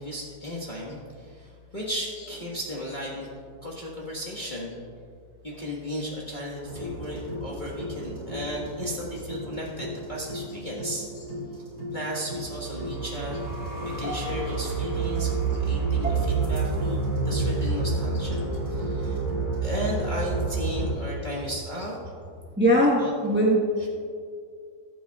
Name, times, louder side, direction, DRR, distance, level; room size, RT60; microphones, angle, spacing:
voice 1, 0.0-3.3 3.6-4.8 5.4-11.1 11.5-11.6 11.9-13.4 13.8-17.0 17.2-18.4 18.7-19.2 19.6-22.0 23.0-23.3, equal, 25° left, -5 dB, 1.5 m, -35 dB
sound 1, 6.6-20.9, right 3 dB, 55° right, 2.6 m, -29 dB
voice 2, 22.6-23.9, equal, 10° right, -4 dB, 0.9 m, -21 dB
20.0 x 8.3 x 2.4 m, 2.2 s
omnidirectional pair, 2.0 m